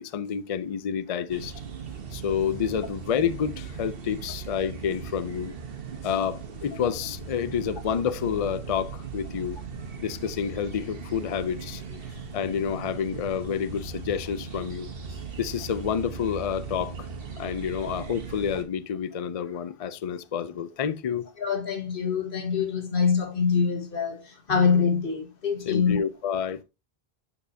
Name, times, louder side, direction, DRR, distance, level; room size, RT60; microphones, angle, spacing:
voice 1, 0.0-1.5 2.1-5.5 6.0-9.6 10.0-11.8 12.3-14.9 15.4-17.1 17.4-21.3 25.7-26.6, left 8 dB, 45° left, 0.5 m, -29 dB
sound 1, 1.3-18.6, right 5 dB, 65° right, 1.2 m, -38 dB
voice 2, 21.4-26.0, left 6 dB, 60° left, 1.7 m, -25 dB
7.2 x 6.8 x 2.7 m
omnidirectional pair, 1.0 m